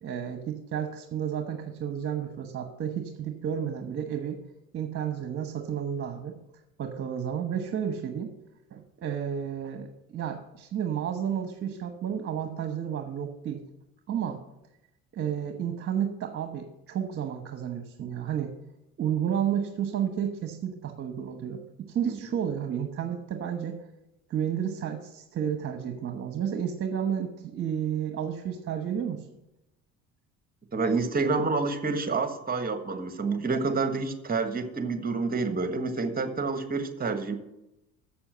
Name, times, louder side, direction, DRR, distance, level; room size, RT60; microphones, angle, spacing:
voice 1, 0.0-4.4 4.7-6.4 6.8-8.3 8.7-13.6 14.1-14.4 15.1-18.5 19.0-23.8 24.3-29.2, right 8 dB, 45° right, 5 dB, 1.1 m, -31 dB
voice 2, 30.7-37.4, right 4 dB, 30° right, 8 dB, 1.4 m, -28 dB
7.3 x 6.9 x 7.8 m, 0.90 s
supercardioid pair, 80°, 32 cm